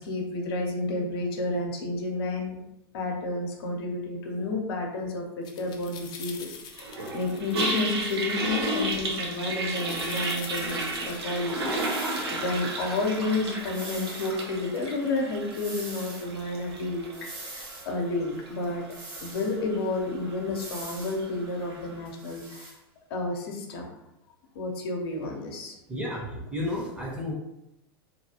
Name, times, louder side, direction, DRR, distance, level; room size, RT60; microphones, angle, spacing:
voice 1, 0.0-2.6 2.9-6.6 7.1-18.8 19.2-22.7 23.1-23.9 24.5-25.7, left 2 dB, 75° left, 1 dB, 0.7 m, -31 dB
sound 1, 5.4-8.3 9.6-11.7, left 6 dB, 35° left, 0.4 m, -43 dB
Toilet flush, 6.7-21.9, right 2 dB, 85° right, 0.6 m, -34 dB
sound 2, 11.7-12.4 13.6-14.4 15.5-16.3 17.1-17.9 18.9-19.6 20.6-21.2 22.1-22.8, right 2 dB, 40° right, 1.1 m, -42 dB
voice 2, 25.9-27.3, left 1 dB, 10° right, -2 dB, 0.7 m, -32 dB
2.6 x 2.2 x 2.9 m, 0.88 s
hypercardioid pair, 120°, 13 cm